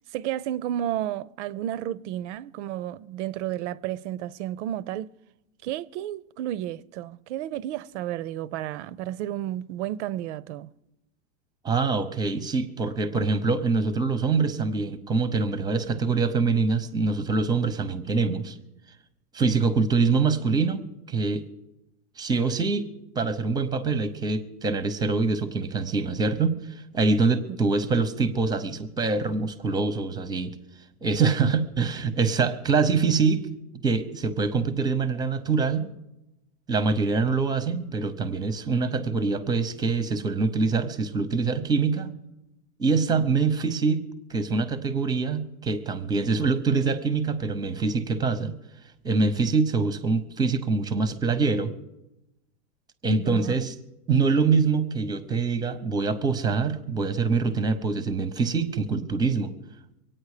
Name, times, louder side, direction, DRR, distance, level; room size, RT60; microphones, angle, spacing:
voice 1, 0.1-5.1 5.6-10.7 53.1-53.5, right 12 dB, 45° right, 0.5 m, -32 dB
voice 2, 11.6-18.6 19.3-21.5 22.2-22.9 23.1-30.6 31.0-33.5 33.8-35.9 36.7-42.1 42.8-44.0 44.3-48.5 49.0-51.7 53.0-53.7 54.1-59.5, right 4 dB, 10° right, 0.7 m, -24 dB
24.0 x 9.0 x 4.9 m
hypercardioid pair, 135°, 48 cm